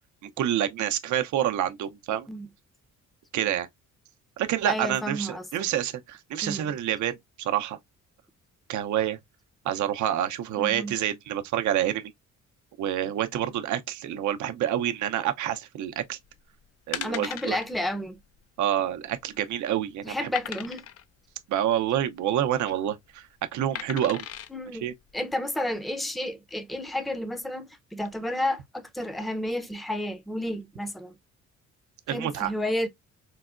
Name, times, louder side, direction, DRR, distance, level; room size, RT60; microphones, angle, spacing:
voice 1, 0.2-2.3 3.3-3.7 4.4-7.8 8.7-9.2 9.6-12.1 12.8-16.2 16.9-17.6 18.6-20.3 21.5-23.3 23.5-24.3 24.8-24.9 32.1-32.5, right 11 dB, 75° right, 0.6 m, -27 dB
voice 2, 4.6-5.7 6.4-6.7 10.6-11.0 17.0-18.2 20.0-20.9 24.5-24.8 25.1-31.1 32.1-32.9, left 1 dB, ahead, 0.6 m, -31 dB
sound 1, 16.3-16.4 16.9-17.6 18.0-18.2 18.4-18.5 19.1-19.6 20.3-21.0 22.4-22.7 23.7-24.5 25.1-25.2, left 10 dB, 50° left, 0.4 m, -37 dB
4.6 x 2.1 x 2.4 m
cardioid pair, 90°, 30 cm